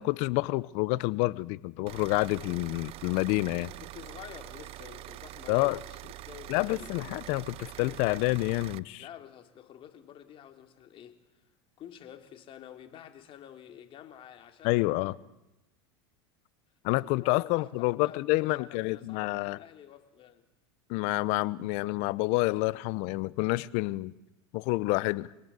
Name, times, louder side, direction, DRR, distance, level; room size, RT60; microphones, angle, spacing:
voice 1, 0.0-3.7 5.5-5.8 6.5-9.1 14.6-15.1 16.8-19.6 20.9-24.1 24.5-25.3, left 21 dB, 60° left, 0.9 m, -28 dB
sound 1, 1.9-8.8, right 16 dB, 45° right, 0.8 m, -45 dB
voice 2, 3.8-6.9 9.0-11.2 11.8-14.8 17.0-20.4, left 10 dB, 45° left, 3.2 m, -50 dB
25.5 x 19.0 x 8.4 m
hypercardioid pair, 100°, 13 cm